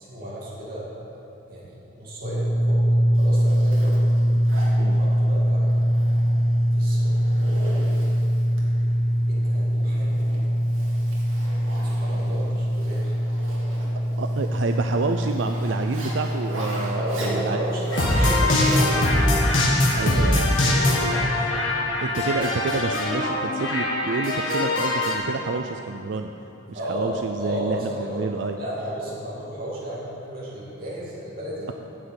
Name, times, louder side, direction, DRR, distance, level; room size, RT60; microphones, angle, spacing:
voice 1, 0.0-2.8 3.2-4.0 4.7-6.0 6.7-7.7 9.3-10.3 10.7-11.1 11.9-13.3 16.9-19.0 19.9-21.4 26.7-28.3 28.6-31.7, right 1 dB, 45° right, -6 dB, 2.1 m, -34 dB
sound 1, 2.2-21.5, equal, 15° left, 2.9 m, -23 dB
Zipper (clothing), 3.1-19.3, right 1 dB, 85° right, 2.2 m, -40 dB
voice 2, 14.2-17.6 19.9-20.4 22.0-26.3 26.7-28.6, right 3 dB, 60° right, 5 dB, 0.4 m, -29 dB
sound 2, 17.9-25.2, left 1 dB, 70° left, 2.0 m, -22 dB
9.8 x 7.2 x 8.4 m, 2.8 s
head